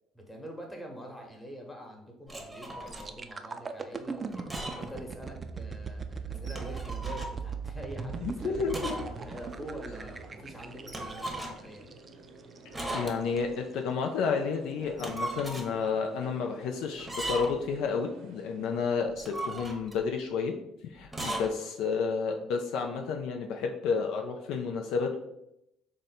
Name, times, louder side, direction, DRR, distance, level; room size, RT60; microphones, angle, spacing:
voice 1, 0.1-8.8 9.2-11.9, equal, 15° left, 1 dB, 1.1 m, -45 dB
sound 1, 2.3-3.1 4.3-5.0 5.3-5.4 6.3-7.4 8.7-9.2 9.4-9.5 10.9-11.7 12.7-13.5 14.8-15.7 17.0-17.7 19.1-20.0 21.1-21.5, right 1 dB, 10° right, 0.8 m, -37 dB
sound 2, 2.9-12.7 13.2-13.4, right 5 dB, 35° right, 0.3 m, -39 dB
sound 3, 8.1-19.0, right 2 dB, 70° right, 0.7 m, -52 dB
voice 2, 8.2-8.9 12.7-20.5 20.8-25.2, left 5 dB, 70° left, 3 dB, 0.3 m, -31 dB
3.6 x 2.1 x 4.1 m, 0.82 s
hypercardioid pair, 60°, 0 cm